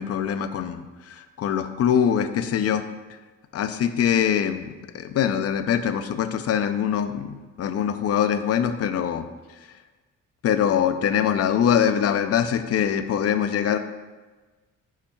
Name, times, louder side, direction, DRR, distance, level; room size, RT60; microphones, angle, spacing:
voice 1, 0.0-2.8 3.5-9.3 10.4-13.8, left 8 dB, 55° left, 9 dB, 0.5 m, -23 dB
8.5 x 5.7 x 2.3 m, 1.3 s
cardioid pair, 90°, 30 cm